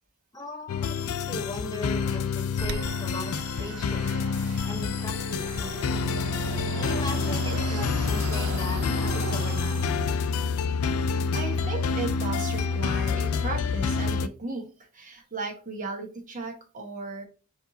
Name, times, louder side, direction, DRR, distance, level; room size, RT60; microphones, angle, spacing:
voice 1, 0.3-4.1 4.6-6.2 6.7-9.8, left 1 dB, 20° left, 2 dB, 1.0 m, -39 dB
sound 1, 0.7-14.3, left 5 dB, 80° left, 0.4 m, -27 dB
Fixed-wing aircraft airplane, 2.6-10.4, right 5 dB, 85° right, 0.5 m, -38 dB
voice 2, 11.3-14.7 14.9-17.3, right 3 dB, 40° right, 1 dB, 1.2 m, -35 dB
4.6 x 2.8 x 3.9 m, 0.34 s
head